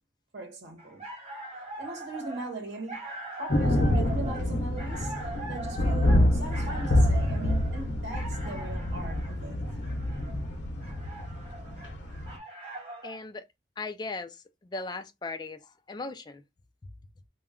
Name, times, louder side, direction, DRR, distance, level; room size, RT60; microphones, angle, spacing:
voice 1, 0.3-1.0 1.8-3.0 3.4-5.1 5.5-9.7, right 2 dB, 75° right, 0.9 m, -40 dB
sound 1, 0.8-13.2, right 2 dB, 35° right, 1.0 m, -42 dB
sound 2, 3.5-12.3, left 1 dB, 80° left, 0.7 m, -27 dB
voice 2, 13.0-13.4 13.8-16.4, left 3 dB, 25° left, 0.3 m, -38 dB
2.2 x 2.2 x 3.5 m
head